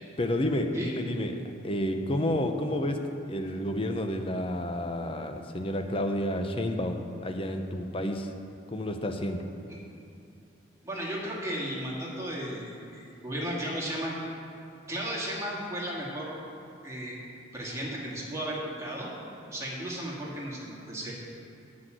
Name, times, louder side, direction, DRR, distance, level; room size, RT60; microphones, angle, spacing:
voice 1, 0.2-3.0 3.3-8.3 8.7-9.4, left 1 dB, 30° left, 5 dB, 0.7 m, -30 dB
voice 2, 10.8-14.1 14.9-16.4 16.8-17.2 17.5-19.1 19.5-21.1, right 1 dB, 15° right, -5 dB, 2.1 m, -34 dB
9.6 x 6.1 x 7.7 m, 2.6 s
head